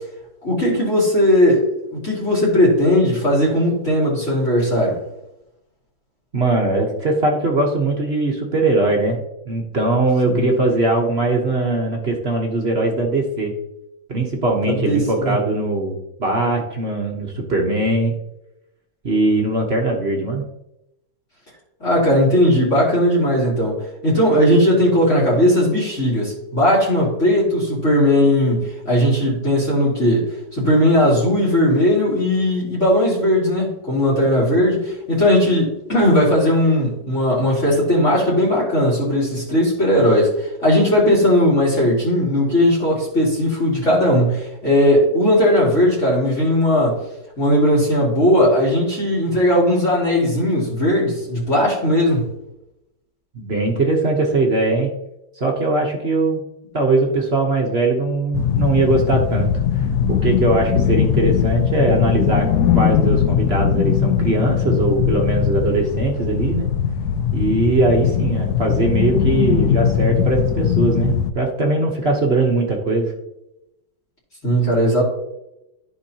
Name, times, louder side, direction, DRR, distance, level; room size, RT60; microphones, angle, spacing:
voice 1, 0.4-1.7 2.0-5.0 10.2-10.5 14.7-15.4 21.8-23.8 24.0-30.3 30.5-47.0 47.4-52.3 74.4-75.0, left 1 dB, 35° left, -6 dB, 2.7 m, -17 dB
voice 2, 6.3-13.5 14.1-18.1 19.0-20.4 53.3-54.9 55.3-56.4 56.7-59.5 60.1-62.5 62.7-66.7 67.3-73.1, right 2 dB, 40° right, 0 dB, 1.0 m, -20 dB
sound 1, 58.3-71.3, left 8 dB, 80° left, 0.8 m, -20 dB
13.5 x 4.6 x 2.8 m, 0.89 s
omnidirectional pair, 2.2 m